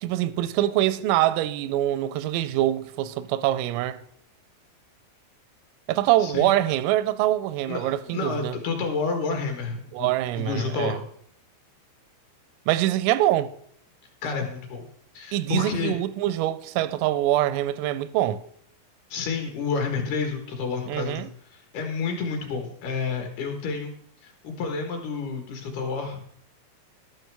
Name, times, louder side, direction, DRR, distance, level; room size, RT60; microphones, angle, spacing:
voice 1, 0.0-4.0 5.9-8.6 9.9-11.0 12.7-13.5 15.3-18.4 20.9-21.3, right 14 dB, 85° right, 3.2 m, -24 dB
voice 2, 6.2-6.5 7.7-10.1 10.4-11.0 14.2-14.9 15.1-16.0 19.1-23.9 24.2-26.2, left 4 dB, 65° left, 2.8 m, -30 dB
12.5 x 11.5 x 3.4 m
omnidirectional pair, 5.9 m